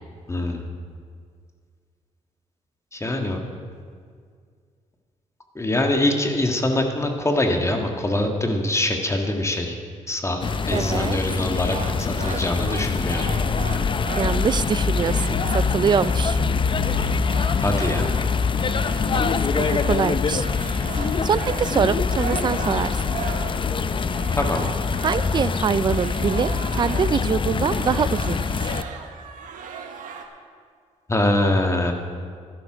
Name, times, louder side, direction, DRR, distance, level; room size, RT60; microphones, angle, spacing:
voice 1, 0.3-0.7 2.9-3.4 5.6-9.8 10.1-10.4 10.7-13.3 17.6-18.1 24.4-24.7 31.1-31.9, left 1 dB, 20° left, 4 dB, 1.6 m, -23 dB
sound 1, 10.4-28.8, left 5 dB, 40° left, 0.6 m, -24 dB
voice 2, 10.7-11.2 14.2-16.4 19.1-19.3 19.6-20.5 21.2-23.0 25.0-28.7, right 7 dB, 35° right, 17 dB, 0.3 m, -24 dB
sound 2, 11.5-14.5 14.9-27.3 27.6-30.2, right 6 dB, 80° right, 1.1 m, -37 dB
12.0 x 11.5 x 5.0 m, 2.1 s
cardioid pair, 75°, 13 cm